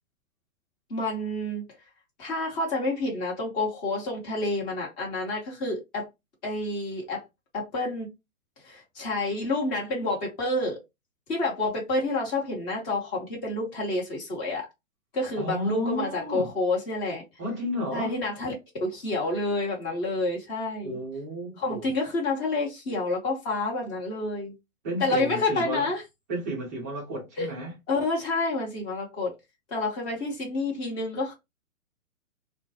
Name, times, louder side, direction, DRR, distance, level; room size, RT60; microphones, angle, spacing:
voice 1, 0.9-1.6 2.2-6.1 6.4-7.2 7.5-8.1 8.6-10.8 11.3-14.7 15.1-17.2 17.9-18.5 18.8-21.0 21.6-24.5 25.0-26.0 27.4-27.5 27.9-29.3 29.7-31.3, left 2 dB, 25° left, 1.1 m, -29 dB
voice 2, 15.4-16.5 17.4-18.2 20.8-21.9 24.8-25.9 26.3-27.7, equal, 15° right, 0.4 m, -32 dB
2.2 x 2.1 x 2.7 m
hypercardioid pair, 135°, 41 cm